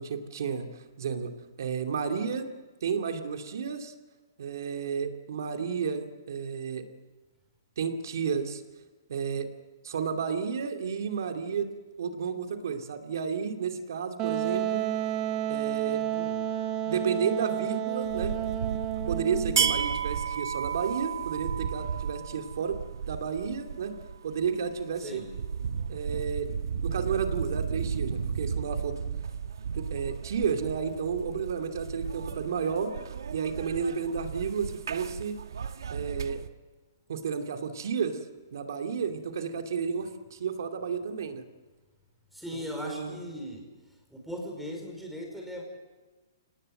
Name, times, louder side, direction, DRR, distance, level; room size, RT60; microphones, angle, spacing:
voice 1, 0.0-1.3 1.6-2.5 2.8-3.9 4.4-6.9 7.8-8.6 9.1-9.5 9.8-11.7 12.0-14.9 15.5-16.0 16.9-18.4 19.1-22.8 23.1-23.9 24.2-25.2 25.9-26.5 26.8-29.0 29.7-32.9 33.3-35.4 35.9-36.4 37.1-38.2 38.5-41.4 42.5-43.2, right 6 dB, 65° right, 5 dB, 2.6 m, -32 dB
Wind instrument woodwind instrument, 14.2-19.8, right 11 dB, 25° right, 1.0 m, -31 dB
sound 1, 18.0-36.5, right 7 dB, 85° right, 1.3 m, -34 dB
voice 2, 42.3-43.6 44.1-45.6, left 1 dB, ahead, 1 dB, 5.0 m, -38 dB
25.5 x 19.0 x 7.9 m, 1.2 s
hypercardioid pair, 160°, 2 cm